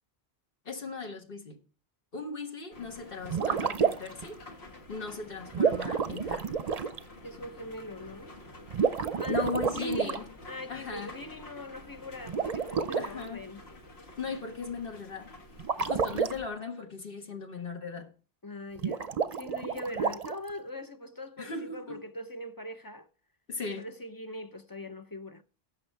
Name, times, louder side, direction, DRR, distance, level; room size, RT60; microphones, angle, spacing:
voice 1, 0.6-1.6 2.1-4.4 4.9-6.5 9.3-10.3 10.7-11.1 13.0-13.4 14.2-15.3 15.7-18.1 21.4-22.0 23.5-23.9, left 4 dB, 60° left, 1.5 m, -38 dB
sound 1, 2.7-16.5, left 2 dB, 80° left, 1.6 m, -49 dB
sound 2, 3.2-4.2 5.5-7.0 8.7-10.2 12.3-13.1 15.6-16.3 18.8-20.5, right 6 dB, 45° right, 0.6 m, -29 dB
voice 2, 7.2-8.3 9.2-10.2 10.5-13.6 18.4-23.1 23.8-25.4, equal, 30° left, 0.4 m, -41 dB
16.0 x 6.3 x 4.5 m
omnidirectional pair, 1.0 m